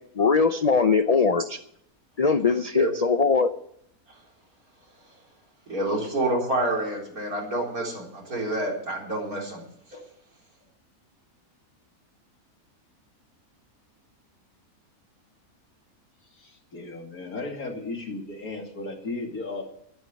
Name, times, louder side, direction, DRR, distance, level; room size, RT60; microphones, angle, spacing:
voice 1, 0.2-1.6 2.2-3.5, left 5 dB, 55° left, 10 dB, 0.4 m, -21 dB
voice 2, 5.7-9.6 9.9-10.0, right 1 dB, 75° right, -1 dB, 4.5 m, -28 dB
voice 3, 16.3-19.6, left 3 dB, 75° left, 2 dB, 3.0 m, -35 dB
12.5 x 10.5 x 6.9 m, 0.72 s
omnidirectional pair, 1.6 m